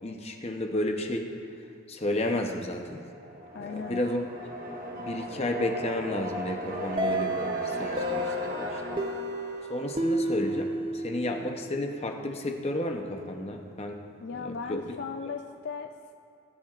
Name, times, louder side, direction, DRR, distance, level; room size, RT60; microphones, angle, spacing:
voice 1, 0.0-1.3 1.9-3.0 3.6-4.3 5.0-9.0 9.7-14.0 14.3-14.9, left 1 dB, 30° left, 3 dB, 0.7 m, -32 dB
sound 1, 2.9-10.7, equal, 40° right, 1.1 m, -37 dB
voice 2, 3.5-4.0 14.2-16.2, left 5 dB, 50° left, 6 dB, 0.3 m, -37 dB
sound 2, 7.0-11.7, right 1 dB, 25° right, 0.6 m, -31 dB
20.0 x 10.5 x 2.5 m, 2.5 s
head